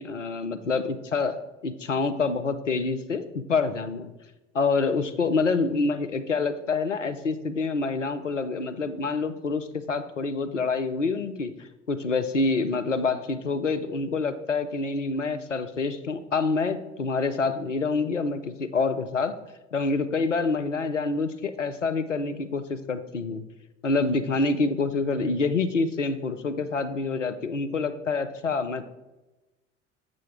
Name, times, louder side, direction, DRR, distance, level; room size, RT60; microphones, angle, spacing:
voice 1, 0.0-4.1 4.5-11.5 11.9-19.4 19.7-23.4 23.8-28.9, left 4 dB, 90° left, 9 dB, 0.5 m, -27 dB
7.5 x 5.2 x 3.4 m, 1.1 s
figure-of-eight pair, 65°, 36 cm